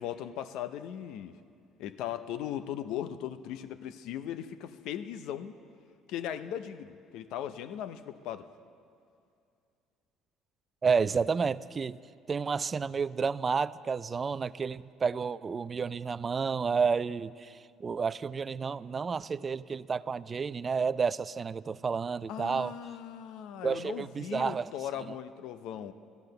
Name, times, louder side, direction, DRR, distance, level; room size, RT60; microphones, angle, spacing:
voice 1, 0.0-1.4 1.8-5.5 6.1-8.5 22.3-25.9, left 10 dB, 75° left, 12 dB, 0.6 m, -38 dB
voice 2, 10.8-12.0 12.3-22.7 23.6-24.7, right 5 dB, 35° right, 17 dB, 0.4 m, -30 dB
14.5 x 11.5 x 6.6 m, 2.4 s
supercardioid pair, 80°, 0 cm